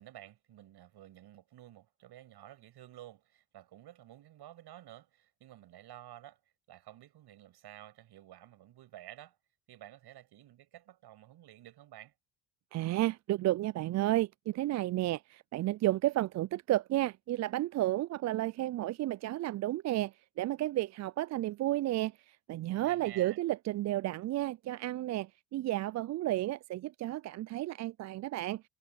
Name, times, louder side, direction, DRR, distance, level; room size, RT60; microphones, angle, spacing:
voice 1, 0.0-6.4 6.7-9.4 9.7-12.1 22.7-23.4, right 13 dB, 55° right, 7.6 m, -52 dB
voice 2, 12.7-28.6, right 15 dB, 35° right, 0.5 m, -32 dB
hypercardioid pair, 65°, 47 cm